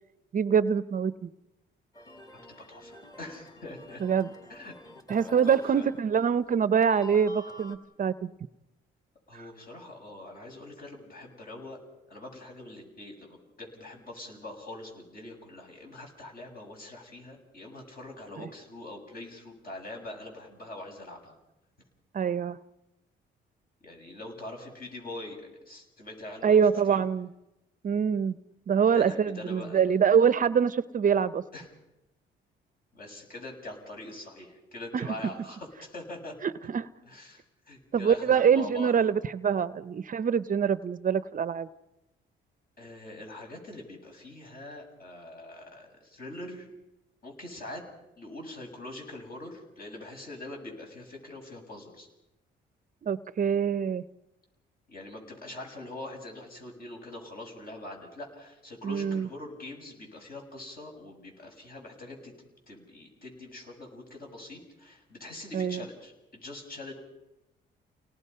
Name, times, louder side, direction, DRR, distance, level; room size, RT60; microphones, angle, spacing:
voice 1, 0.3-1.3 4.0-4.3 5.1-8.3 9.3-9.4 18.4-18.5 22.1-22.6 26.4-27.3 27.8-28.4 28.7-31.4 34.9-35.1 36.4-36.9 37.9-41.7 53.0-54.0 58.8-59.3 65.5-65.9, right 7 dB, 40° right, 15 dB, 0.7 m, -25 dB
sound 1, 1.9-6.6 6.8-7.8, left 1 dB, 20° left, 2.5 m, -48 dB
voice 2, 2.6-4.0 4.5-4.7 5.1-5.9 9.3-11.8 12.1-21.4 23.8-26.6 26.9-27.0 28.9-29.8 31.5-31.7 32.9-36.4 37.1-39.1 42.8-46.7 47.2-47.8 48.2-52.1 54.9-62.3 62.7-66.9, left 2 dB, 50° left, 2 dB, 7.2 m, -43 dB
30.0 x 18.5 x 5.6 m, 0.92 s
cardioid pair, 90°, 20 cm